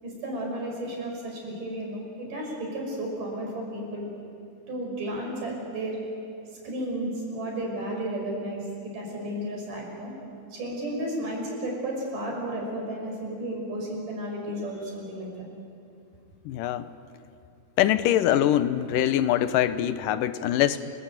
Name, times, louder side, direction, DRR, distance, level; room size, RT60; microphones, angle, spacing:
voice 1, 0.0-4.1 4.7-6.0 6.6-10.1 10.5-15.3, right 1 dB, 75° right, 0 dB, 7.3 m, -33 dB
voice 2, 16.5-16.9 17.8-20.9, left 11 dB, 85° left, 13 dB, 2.6 m, -23 dB
29.0 x 21.5 x 9.1 m, 2.5 s
omnidirectional pair, 3.7 m